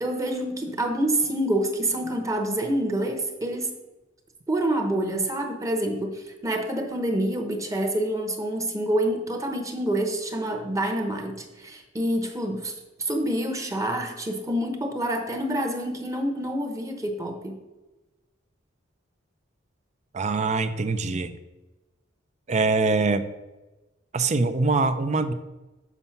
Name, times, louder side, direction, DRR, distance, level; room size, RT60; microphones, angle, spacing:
voice 1, 0.0-3.8 4.5-12.7 13.0-17.6, right 1 dB, 15° right, 5 dB, 0.9 m, -27 dB
voice 2, 20.1-21.4 22.5-23.2 24.1-25.3, right 3 dB, 35° right, 11 dB, 0.5 m, -23 dB
7.2 x 5.5 x 5.7 m, 1.1 s
head